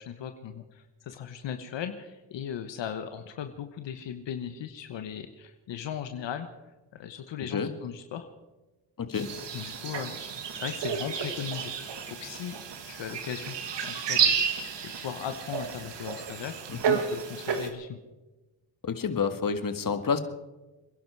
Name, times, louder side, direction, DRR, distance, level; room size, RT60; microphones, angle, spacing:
voice 1, 0.0-6.5 6.9-8.3 9.5-10.1 10.5-13.6 13.8-14.4 14.8-18.0, left 9 dB, 80° left, 7 dB, 1.2 m, -38 dB
voice 2, 9.0-9.3 16.7-17.0 18.8-20.2, left 6 dB, 50° left, 8 dB, 1.8 m, -29 dB
sound 1, 9.1-17.7, right 7 dB, 75° right, 2.0 m, -31 dB
26.5 x 11.0 x 4.7 m, 1.1 s
cardioid pair, 65°, 43 cm